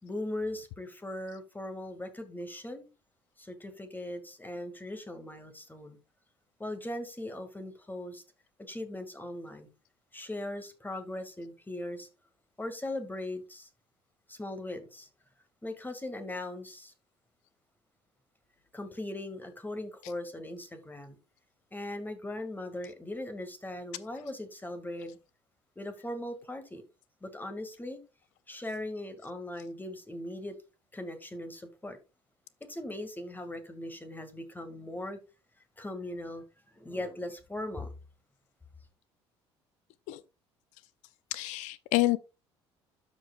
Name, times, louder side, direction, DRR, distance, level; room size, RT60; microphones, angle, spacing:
voice 1, 0.0-2.9 3.4-6.0 6.6-8.2 8.6-9.7 10.1-12.1 12.6-13.7 14.3-15.1 15.6-16.9 18.7-21.2 21.7-25.2 25.8-26.8 27.2-28.0 28.5-30.6 30.9-32.0 32.6-35.2 35.8-37.9, left 1 dB, 15° left, 2.0 m, -39 dB
voice 2, 41.3-42.2, left 18 dB, 65° left, 0.5 m, -28 dB
13.0 x 5.1 x 2.4 m
hypercardioid pair, 55°, 14 cm